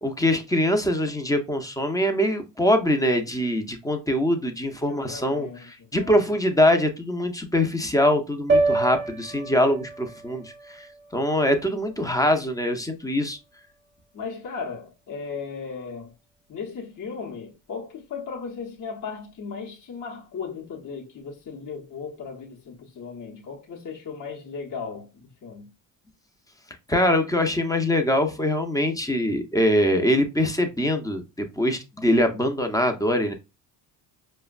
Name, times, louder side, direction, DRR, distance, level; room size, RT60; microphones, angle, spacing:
voice 1, 0.0-5.5 5.9-10.9 11.1-13.4 26.9-33.3, left 1 dB, 10° left, 0.7 m, -23 dB
voice 2, 4.9-6.2 14.1-16.1 16.5-25.7, left 5 dB, 45° left, 1.0 m, -36 dB
sound 1, 8.5-12.8, right 3 dB, 25° right, 0.7 m, -28 dB
4.9 x 2.2 x 2.4 m
supercardioid pair, 65°, 46 cm